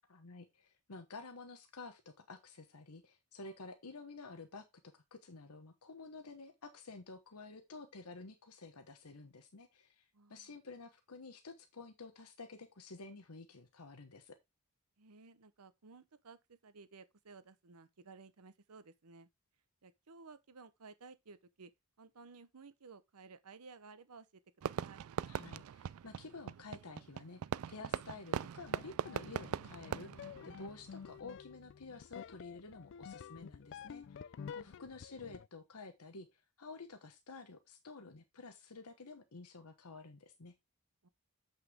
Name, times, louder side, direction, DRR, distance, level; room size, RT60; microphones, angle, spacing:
voice 1, 0.1-4.6 4.9-14.4 25.2-27.4 27.7-40.5, left 3 dB, 85° left, 1.1 m, -51 dB
voice 2, 10.1-10.5 15.0-19.3 19.8-21.7 22.0-24.3 24.6-25.0 34.4-34.8 41.0-41.1, right 4 dB, 90° right, 0.9 m, -56 dB
Fireworks, 24.6-31.1, right 8 dB, 70° right, 0.3 m, -41 dB
sound 1, 28.6-35.5, left 7 dB, 55° left, 0.3 m, -50 dB
8.2 x 5.7 x 3.6 m
head